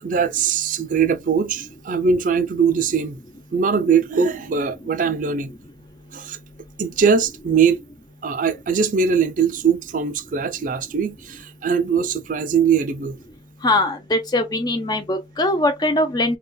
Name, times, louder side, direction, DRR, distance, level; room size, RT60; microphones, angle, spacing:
voice 1, 0.0-3.2 3.5-5.5 6.1-6.4 6.8-7.8 8.2-13.2, right 6 dB, 45° right, 0.4 m, -21 dB
voice 2, 13.6-16.4, left 1 dB, 25° left, 0.5 m, -21 dB
3.8 x 2.3 x 2.2 m
head